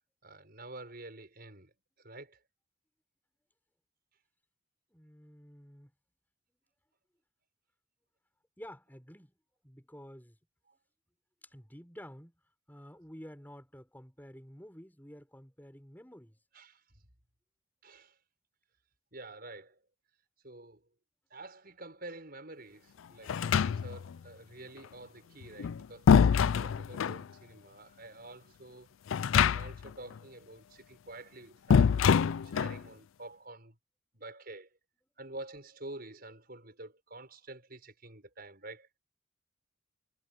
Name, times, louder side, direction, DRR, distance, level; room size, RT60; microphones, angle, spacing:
voice 1, 0.2-1.7 2.0-2.4 16.5-16.8 17.8-18.2 19.1-19.8 20.4-20.8 21.3-28.9 29.4-33.8 34.1-34.7 35.2-38.9, right 2 dB, 50° right, 6.6 m, -48 dB
voice 2, 4.9-5.9 8.6-9.4 9.6-10.4 11.4-12.3 12.7-16.4, equal, 10° left, 6.6 m, -50 dB
sound 1, 23.3-24.1 25.4-27.2 29.1-29.9 30.2-30.3 31.7-32.8, left 7 dB, 85° left, 0.4 m, -25 dB
head